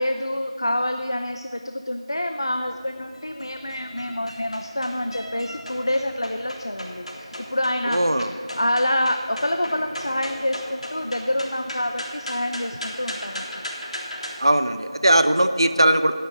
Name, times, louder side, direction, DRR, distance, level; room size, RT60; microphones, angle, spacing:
voice 1, 0.0-8.0 8.6-13.5, left 1 dB, 45° left, 7 dB, 0.5 m, -27 dB
sound 1, 2.6-14.4, equal, 80° left, 3.6 m, -37 dB
voice 2, 7.8-8.3 14.4-16.1, right 1 dB, 45° right, 11 dB, 0.7 m, -19 dB
12.0 x 9.0 x 8.2 m, 2.2 s
figure-of-eight pair, 180°, 3 cm